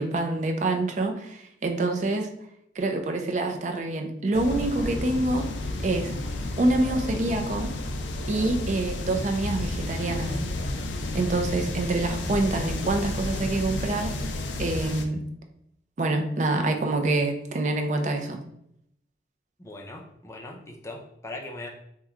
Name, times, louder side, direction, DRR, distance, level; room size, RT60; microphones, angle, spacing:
voice 1, 0.0-2.3 2.8-5.5 5.8-6.1 6.6-7.7 8.3-10.4 11.1-14.2 14.6-15.2 16.0-18.4, right 2 dB, 40° right, 4 dB, 0.4 m, -26 dB
sound 1, 4.3-15.0, left 2 dB, 85° left, 0.4 m, -31 dB
voice 2, 19.6-21.7, left 2 dB, 15° left, 0 dB, 0.4 m, -40 dB
3.0 x 2.2 x 3.5 m, 0.73 s
head